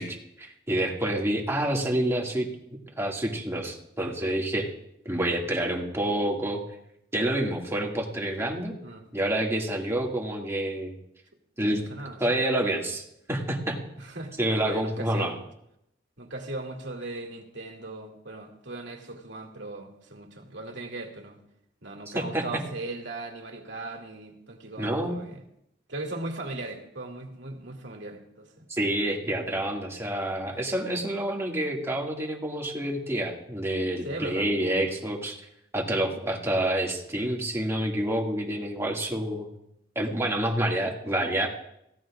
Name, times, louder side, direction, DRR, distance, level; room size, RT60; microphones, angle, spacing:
voice 1, 0.0-2.5 3.0-4.7 5.1-6.6 7.1-8.7 9.1-10.9 11.6-11.8 12.2-13.0 13.3-13.8 14.4-15.3 22.1-22.4 24.8-25.2 28.7-35.4 35.7-39.5 40.0-41.5, right 1 dB, 15° right, -1 dB, 2.2 m, -28 dB
voice 2, 11.9-12.4 14.0-14.3 14.6-15.4 16.2-21.4 21.8-25.4 25.9-28.7 31.0-31.1 34.0-34.5 34.8-35.0, right 2 dB, 75° right, 1 dB, 2.6 m, -38 dB
23.0 x 17.0 x 2.5 m, 0.79 s
head